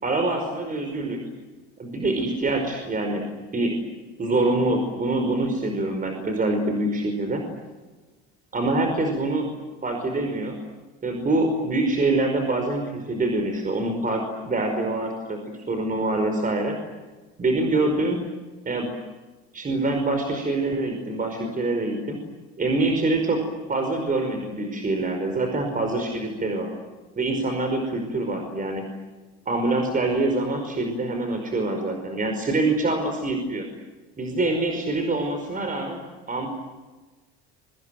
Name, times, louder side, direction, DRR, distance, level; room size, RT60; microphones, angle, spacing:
voice 1, 0.0-1.2 1.8-3.3 3.5-3.8 4.2-7.4 8.5-9.5 9.8-10.6 11.0-15.4 15.7-16.8 17.4-18.2 18.6-18.9 19.5-22.2 22.6-23.4 23.7-26.7 27.2-28.8 29.5-33.6 34.2-36.0 36.3-36.5, right 2 dB, 25° right, 5 dB, 5.2 m, -25 dB
28.0 x 24.5 x 7.8 m, 1.3 s
supercardioid pair, 100°, 32 cm